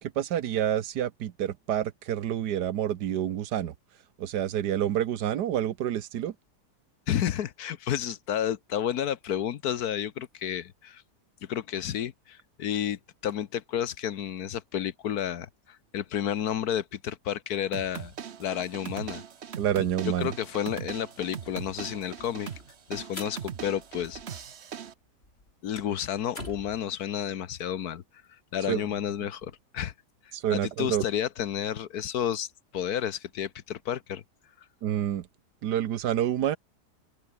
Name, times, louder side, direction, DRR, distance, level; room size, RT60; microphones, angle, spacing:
voice 1, 0.0-3.7 4.2-6.3 19.6-20.3 28.7-28.8 30.3-31.0 34.8-35.3 35.6-36.6, right 10 dB, 80° right, 1.5 m, -28 dB
voice 2, 7.1-11.0 11.4-18.1 18.4-19.2 19.8-22.5 22.9-24.4 25.6-28.0 28.5-29.9 30.5-32.5 32.7-34.2, left 10 dB, 65° left, 1.4 m, -31 dB
sound 1, 17.7-24.9, right 8 dB, 45° right, 1.0 m, -40 dB
sound 2, 21.0-24.6 24.9-26.8, left 1 dB, 35° left, 6.1 m, -46 dB
open air
omnidirectional pair, 1.8 m